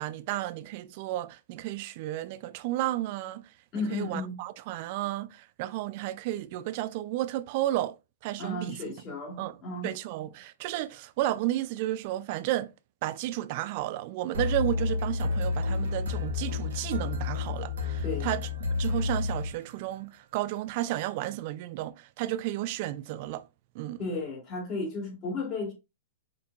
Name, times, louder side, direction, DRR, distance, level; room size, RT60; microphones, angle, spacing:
voice 1, 0.0-3.5 3.9-8.0 8.2-8.8 9.4-9.6 9.8-12.7 13.0-23.5 23.7-24.0, right 15 dB, 45° right, 0.3 m, -32 dB
voice 2, 3.7-4.4 8.4-9.9 18.0-18.3 24.0-25.7, left 3 dB, 30° left, 1.6 m, -34 dB
sound 1, 14.3-20.0, left 4 dB, 75° right, 1.0 m, -30 dB
5.2 x 2.7 x 2.3 m
hypercardioid pair, 135°, 0 cm